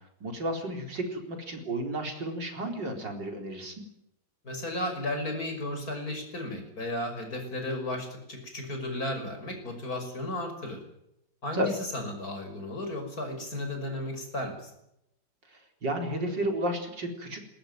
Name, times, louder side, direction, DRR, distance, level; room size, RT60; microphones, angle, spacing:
voice 1, 0.2-3.7 11.5-11.7 15.8-17.4, right 1 dB, 65° right, 4 dB, 4.7 m, -32 dB
voice 2, 4.4-10.8 11.4-14.7, left 1 dB, 45° left, 4 dB, 6.5 m, -34 dB
21.0 x 20.5 x 9.4 m, 0.80 s
omnidirectional pair, 2.1 m